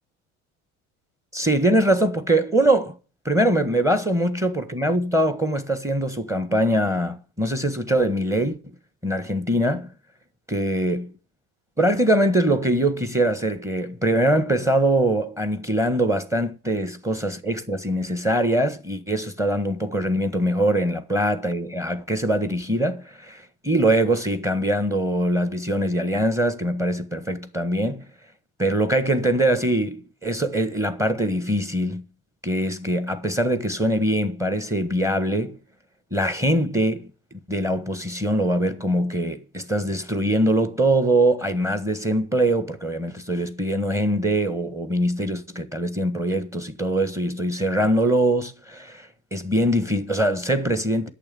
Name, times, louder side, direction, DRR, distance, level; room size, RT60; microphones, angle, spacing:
voice 1, 1.3-2.9 3.2-8.6 9.0-9.9 10.5-11.1 11.8-28.0 28.6-32.1 32.4-35.6 36.1-37.1 37.5-51.1, right 1 dB, 5° right, 1.5 m, -23 dB
8.8 x 7.1 x 7.7 m
hypercardioid pair, 70°, 44 cm